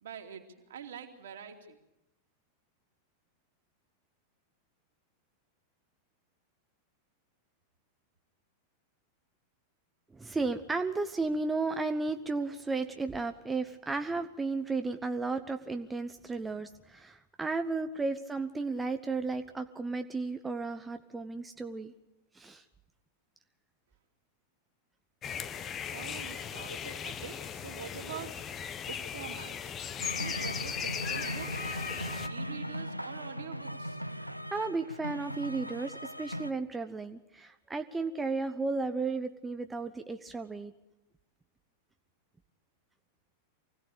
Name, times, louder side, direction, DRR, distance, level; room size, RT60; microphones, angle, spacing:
voice 1, 0.0-1.8 25.9-28.3 28.8-29.7 30.1-31.7 32.3-34.0, right 7 dB, 60° right, 3 dB, 2.9 m, -45 dB
voice 2, 10.1-21.9 22.3-22.6 34.5-40.7, right 3 dB, 10° right, 7 dB, 1.0 m, -34 dB
sound 1, 25.2-32.3, left 8 dB, 25° left, 1.1 m, -38 dB
sound 2, 30.0-36.5, equal, 90° right, 0.8 m, -39 dB
24.5 x 17.5 x 6.9 m, 0.93 s
figure-of-eight pair, 90°, 0 cm